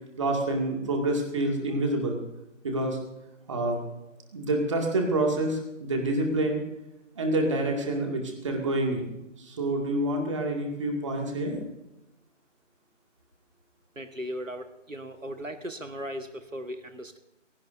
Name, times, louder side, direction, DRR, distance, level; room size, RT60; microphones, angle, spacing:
voice 1, 0.2-2.2 2.6-3.0 3.5-3.8 4.3-6.6 7.2-9.1 9.4-11.6, right 1 dB, 25° right, 1 dB, 2.3 m, -27 dB
voice 2, 13.9-17.2, equal, 85° right, 8 dB, 1.6 m, -37 dB
28.5 x 17.5 x 2.7 m, 0.91 s
figure-of-eight pair, 160°, 38 cm